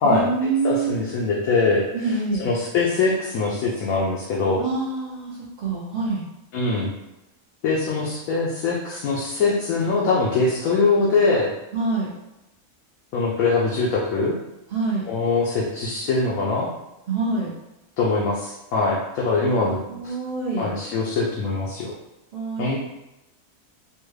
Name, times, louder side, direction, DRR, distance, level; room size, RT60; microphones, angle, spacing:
voice 1, 0.0-1.0 1.9-2.5 4.6-6.2 11.7-12.1 14.7-15.1 17.1-17.5 19.9-20.7 22.3-22.8, right 3 dB, 60° right, -5 dB, 0.4 m, -26 dB
voice 2, 0.6-1.9 2.4-4.6 6.5-6.9 7.6-11.5 13.1-14.3 15.1-16.7 18.0-20.1 20.6-21.9 22.6-22.8, left 3 dB, 85° left, -4 dB, 1.1 m, -22 dB
3.4 x 2.2 x 3.2 m, 0.93 s
omnidirectional pair, 1.4 m